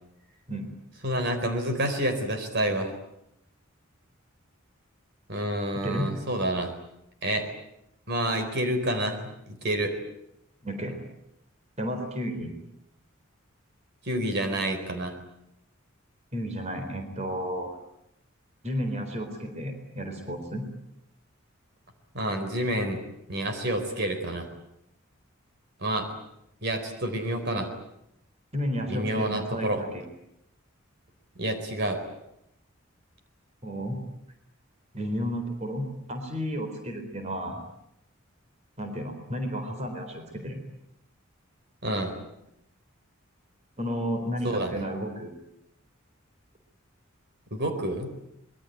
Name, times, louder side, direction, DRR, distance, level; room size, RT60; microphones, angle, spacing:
voice 1, 1.0-2.9 5.3-6.7 7.2-7.5 8.1-9.2 9.5-10.0 14.0-15.2 22.1-23.0 23.3-24.5 25.8-26.1 26.6-27.7 28.9-29.8 31.4-32.0 41.8-42.1 44.4-44.8 47.5-48.1, right 1 dB, 55° right, 7 dB, 4.2 m, -28 dB
voice 2, 10.6-11.0 11.8-12.6 16.3-17.7 18.6-20.7 28.5-30.0 33.6-34.0 34.9-37.6 38.8-40.6 43.8-45.4, equal, 30° right, 6 dB, 4.0 m, -32 dB
25.5 x 22.0 x 9.3 m, 0.79 s
head